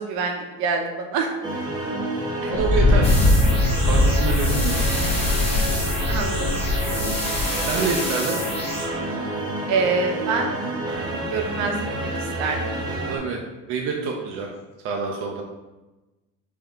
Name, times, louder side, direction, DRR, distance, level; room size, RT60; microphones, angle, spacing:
voice 1, 0.0-1.3 2.4-2.5 6.0-6.5 9.7-10.6 11.2-12.1 12.4-12.8, right 4 dB, 65° right, 3 dB, 0.9 m, -26 dB
sound 1, 1.4-13.2, right 1 dB, 15° right, 0.8 m, -29 dB
Thunder, 2.5-8.0, left 1 dB, 35° left, 1.0 m, -21 dB
voice 2, 2.5-3.2 3.9-4.8 5.2-5.3 5.7-5.9 7.7-8.4 13.1-13.4 13.7-14.5 14.8-15.4, right 4 dB, 45° right, 0 dB, 0.6 m, -27 dB
sound 2, 3.0-8.9, left 1 dB, 20° left, 1.4 m, -30 dB
5.4 x 2.8 x 3.5 m, 1.1 s
cardioid pair, 155°, 31 cm